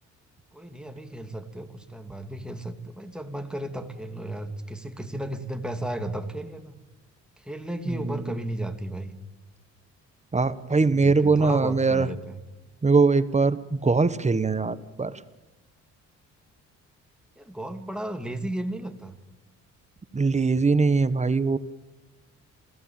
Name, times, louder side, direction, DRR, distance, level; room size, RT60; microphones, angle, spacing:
voice 1, 0.5-6.8 7.4-9.2 10.5-12.4 17.4-19.2, right 1 dB, 5° right, 6 dB, 2.7 m, -34 dB
voice 2, 10.3-12.1 12.8-15.2 20.1-21.6, right 4 dB, 25° right, 14 dB, 1.1 m, -22 dB
28.5 x 16.5 x 8.9 m, 1.1 s
cardioid pair, 90°, 30 cm